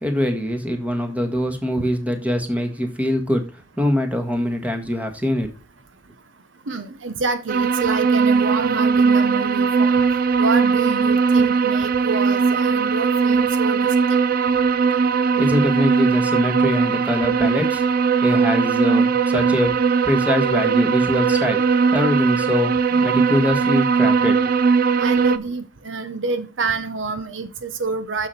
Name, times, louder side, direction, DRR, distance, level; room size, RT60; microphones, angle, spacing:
voice 1, 0.0-5.5 15.4-17.8 18.2-19.8 20.0-22.7 23.0-24.4, left 1 dB, 10° right, 1.6 m, -23 dB
voice 2, 6.7-14.2 25.0-28.3, right 4 dB, 75° right, 0.9 m, -27 dB
sound 1, 7.5-25.4, right 5 dB, 50° right, 0.5 m, -19 dB
7.1 x 6.9 x 4.2 m
head